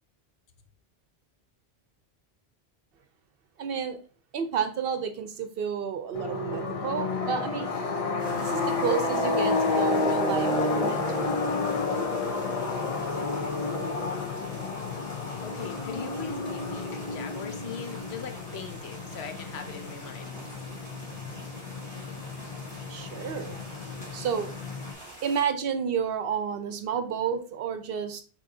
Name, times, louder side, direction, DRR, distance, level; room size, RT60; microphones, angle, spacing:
voice 1, 3.6-4.0 4.3-7.7 8.3-10.5 10.7-11.8 22.9-23.6 24.1-24.5 25.2-28.2, right 7 dB, 65° right, 0.8 m, -31 dB
sound 1, 6.1-24.9, left 3 dB, 40° left, 0.6 m, -30 dB
sound 2, 8.2-25.4, right 1 dB, 5° left, 2.3 m, -46 dB
voice 2, 15.4-20.4, left 7 dB, 75° left, 0.9 m, -40 dB
6.2 x 2.8 x 2.6 m
omnidirectional pair, 1.1 m